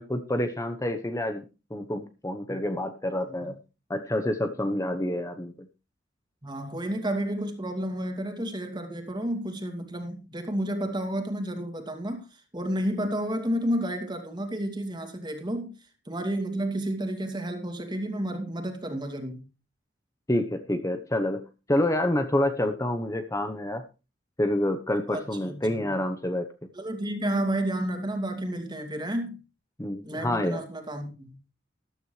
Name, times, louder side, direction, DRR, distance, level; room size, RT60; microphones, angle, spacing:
voice 1, 0.0-1.5 1.7-3.6 3.9-5.7 20.3-23.8 24.4-26.7 29.8-30.6, left 1 dB, 15° left, 0.9 m, -28 dB
voice 2, 6.4-15.7 16.1-19.4 25.1-25.9 26.7-29.4 30.0-31.5, right 1 dB, 25° right, 2.5 m, -31 dB
14.0 x 12.5 x 3.2 m
head